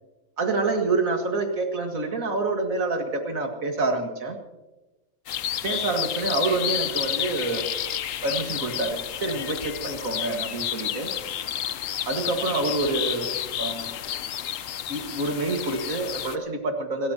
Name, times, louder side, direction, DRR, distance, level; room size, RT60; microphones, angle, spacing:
voice 1, 0.4-4.4 5.6-7.7 8.2-11.1 12.1-13.3 13.6-13.9 14.9-17.1, right 3 dB, 75° right, 4 dB, 2.3 m, -27 dB
sound 1, 5.3-16.4, left 10 dB, 75° left, 1.1 m, -31 dB
27.5 x 14.0 x 2.9 m, 1.1 s
omnidirectional pair, 1.4 m